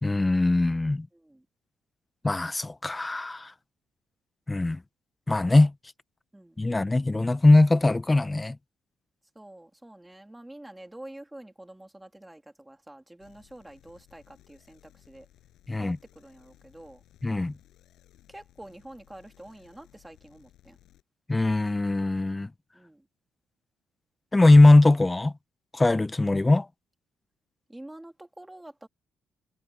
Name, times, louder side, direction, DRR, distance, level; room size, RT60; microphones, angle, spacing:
voice 1, 0.0-1.1 2.2-3.5 4.5-4.8 5.3-5.7 6.6-8.6 15.7-16.0 17.2-17.6 21.3-22.5 24.3-25.3 25.7-26.7, left 2 dB, 15° left, 0.5 m, -20 dB
voice 2, 1.1-1.4 6.3-7.0 9.3-15.3 15.7-17.0 18.3-20.8 22.7-23.1 27.7-28.9, right 1 dB, 5° right, 2.6 m, -47 dB
sound 1, 13.2-21.0, left 13 dB, 80° left, 6.6 m, -59 dB
cardioid pair, 140°, 0 cm